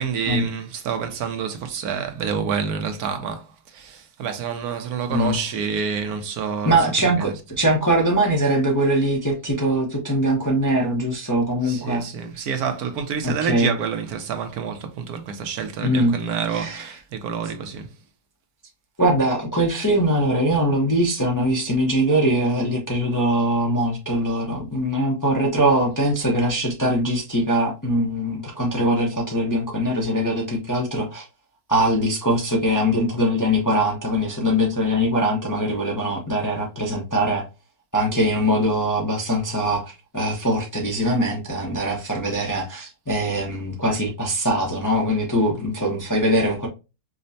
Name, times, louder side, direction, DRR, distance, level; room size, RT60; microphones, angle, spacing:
voice 1, 0.0-3.4 3.7-7.4 11.6-17.9, right 6 dB, 75° right, 1.2 m, -28 dB
voice 2, 6.6-7.3 7.6-12.0 12.3-12.4 13.2-13.7 15.8-16.1 16.5-16.9 19.0-31.3 31.7-37.5 37.9-46.7, equal, 20° left, 0.5 m, -22 dB
5.1 x 2.1 x 2.6 m
omnidirectional pair, 1.6 m